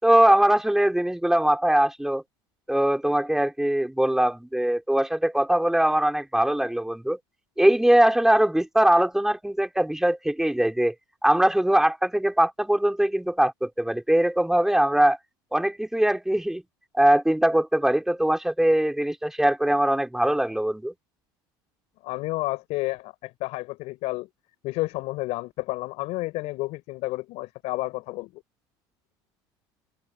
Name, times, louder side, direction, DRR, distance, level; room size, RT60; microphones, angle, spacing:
voice 1, 0.0-2.2 2.7-7.2 7.6-10.9 11.2-15.2 15.5-16.6 16.9-20.9, right 1 dB, 5° right, 5.2 m, -21 dB
voice 2, 22.0-24.3 24.6-28.4, left 20 dB, 65° left, 4.9 m, -31 dB
open air
supercardioid pair, 105°, 12 cm